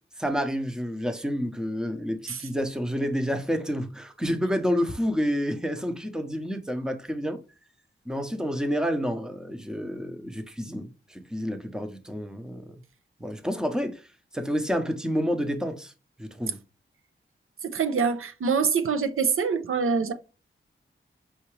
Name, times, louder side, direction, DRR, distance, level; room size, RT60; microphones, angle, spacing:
voice 1, 0.2-7.4 8.1-12.7 13.2-14.0 14.3-15.9 16.2-16.6, equal, 5° right, 0.7 m, -29 dB
voice 2, 17.6-20.1, right 5 dB, 90° right, 0.6 m, -25 dB
5.7 x 2.7 x 3.1 m
wide cardioid pair, 135°, 21 cm